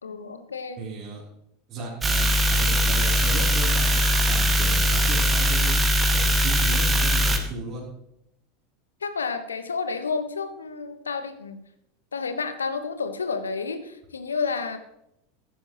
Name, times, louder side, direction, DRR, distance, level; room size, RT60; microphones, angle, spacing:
voice 1, 0.0-0.8 9.0-11.6 12.1-14.8, left 5 dB, 75° left, 9 dB, 1.2 m, -30 dB
voice 2, 0.8-1.2 1.7-5.9 6.1-7.9, right 3 dB, 40° right, -6 dB, 3.7 m, -35 dB
sound 1, 2.0-7.4, equal, 20° right, 1.8 m, -21 dB
15.5 x 13.0 x 3.1 m, 0.80 s
figure-of-eight pair, 80°, 0 cm